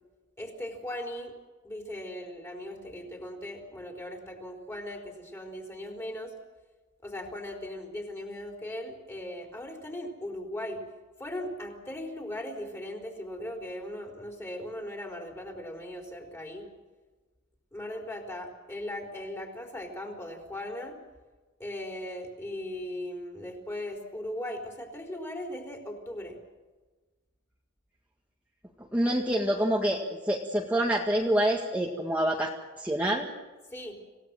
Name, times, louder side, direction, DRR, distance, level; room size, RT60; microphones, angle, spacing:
voice 1, 0.4-1.3 1.6-6.3 7.0-10.8 11.2-16.7 17.7-21.0 21.6-26.4 33.7-34.0, left 1 dB, 15° left, 2 dB, 4.2 m, -38 dB
voice 2, 28.9-32.5 32.8-33.3, right 1 dB, 5° right, -1 dB, 1.9 m, -26 dB
27.0 x 17.0 x 7.7 m, 1.3 s
head